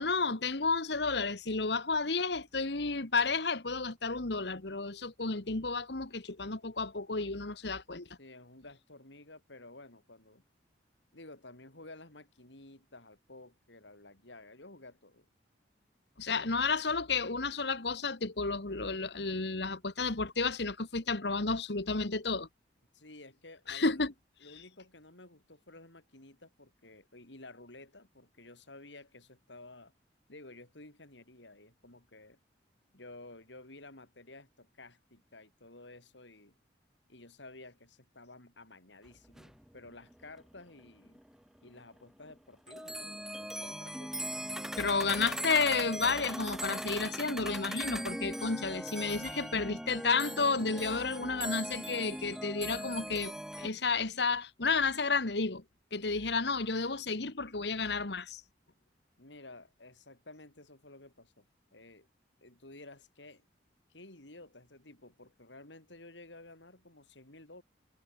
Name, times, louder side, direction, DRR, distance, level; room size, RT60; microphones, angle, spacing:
voice 1, 0.0-8.1 16.2-22.5 23.7-24.1 44.8-53.3 53.6-55.6 55.9-58.4, left 4 dB, 65° left, 1.7 m, -32 dB
voice 2, 8.2-10.4 11.1-15.3 22.9-24.1 24.4-29.9 30.3-32.4 32.9-36.6 37.1-41.2 41.6-44.3 52.3-52.5 59.2-61.5 61.7-62.1 62.4-63.4 63.9-67.6, left 2 dB, 85° left, 5.7 m, -53 dB
sound 1, 39.1-39.2 39.3-41.4 41.7-41.8 42.2-42.3 42.7-53.7, right 1 dB, 5° right, 0.8 m, -39 dB
head